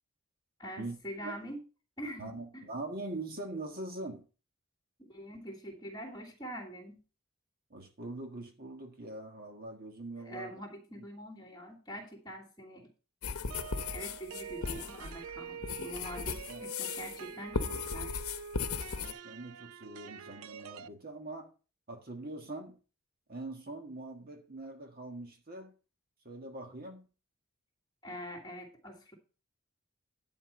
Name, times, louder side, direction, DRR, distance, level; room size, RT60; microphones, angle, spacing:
voice 1, 0.6-1.6 2.0-2.6 5.1-7.0 10.2-12.9 13.9-18.1 28.0-29.1, equal, 20° left, 3.0 m, -44 dB
voice 2, 2.2-4.3 7.7-10.6 16.3-16.6 18.9-21.5 21.9-22.8 23.3-25.7 26.2-27.1, right 2 dB, 45° right, 1.6 m, -43 dB
sound 1, 13.2-17.2 17.5-19.1, left 5 dB, 80° left, 0.8 m, -37 dB
sound 2, 13.5-20.9, right 6 dB, 75° right, 0.5 m, -46 dB
11.0 x 4.5 x 7.6 m
head